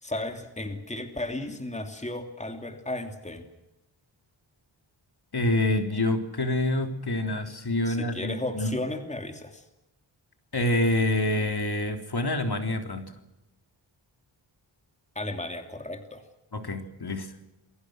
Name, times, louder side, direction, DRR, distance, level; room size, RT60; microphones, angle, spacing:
voice 1, 0.0-3.5 7.9-9.6 15.1-16.2, left 1 dB, 15° left, 6 dB, 3.0 m, -34 dB
voice 2, 5.3-8.8 10.5-13.1 16.5-17.3, left 1 dB, 50° left, 6 dB, 3.7 m, -27 dB
28.5 x 23.0 x 6.4 m, 0.92 s
cardioid pair, 65°, 47 cm